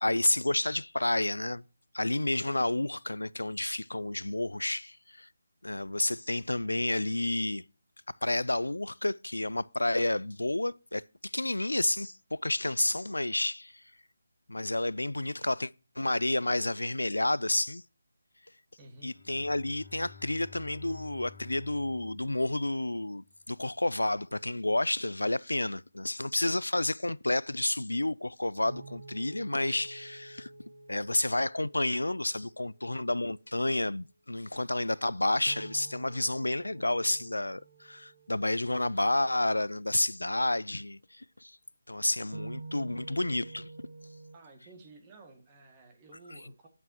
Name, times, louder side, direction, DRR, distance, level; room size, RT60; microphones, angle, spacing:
voice 1, 0.0-1.6 1.9-5.3 5.6-7.6 8.2-13.8 14.5-17.8 19.0-30.5 30.9-41.6 41.9-43.7, left 1 dB, 85° left, 0.3 m, -30 dB
voice 2, 18.8-19.1 44.3-46.7, right 2 dB, 20° right, 1.9 m, -53 dB
Bowed string instrument, 19.1-23.4, left 6 dB, 40° left, 2.7 m, -53 dB
sound 1, 28.7-32.8 35.5-39.7 42.3-44.4, right 3 dB, 60° right, 1.1 m, -49 dB
8.8 x 8.5 x 2.8 m
figure-of-eight pair, 155°, 0 cm